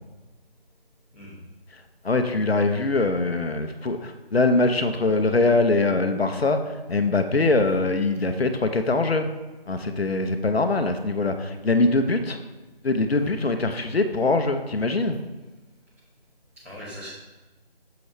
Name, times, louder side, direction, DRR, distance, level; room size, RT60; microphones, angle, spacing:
voice 1, 2.0-9.3 9.7-12.4 12.8-15.2, left 3 dB, 85° left, 7 dB, 0.9 m, -23 dB
voice 2, 16.6-17.1, equal, 15° right, -12 dB, 2.3 m, -41 dB
6.9 x 6.6 x 3.2 m, 1.2 s
figure-of-eight pair, 170°, 30 cm